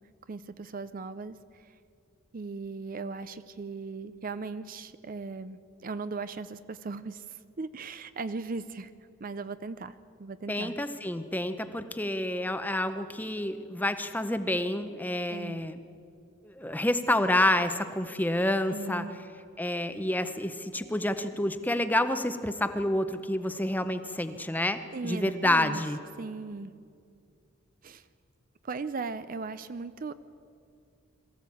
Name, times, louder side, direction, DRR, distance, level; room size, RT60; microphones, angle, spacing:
voice 1, 0.3-1.7 2.3-8.9 9.2-10.8 15.3-15.6 18.7-19.2 24.9-25.8 26.2-26.7 27.8-28.0 28.6-30.1, right 4 dB, 40° right, 13 dB, 0.5 m, -38 dB
voice 2, 10.5-15.8 16.4-19.0 19.6-26.0, left 1 dB, 10° left, 10 dB, 0.7 m, -28 dB
22.0 x 14.5 x 8.4 m, 2.4 s
head